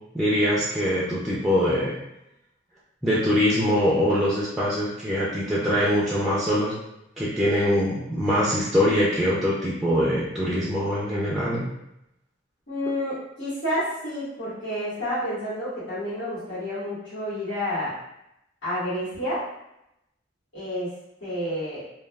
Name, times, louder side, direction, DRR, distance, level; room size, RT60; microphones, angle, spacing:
voice 1, 0.1-2.0 3.0-6.7 7.2-11.7, equal, ahead, -7 dB, 0.4 m, -23 dB
voice 2, 12.7-17.9 18.6-19.4 20.5-20.9 21.2-21.8, equal, 85° left, -12 dB, 1.5 m, -29 dB
3.2 x 2.3 x 2.3 m, 0.85 s
head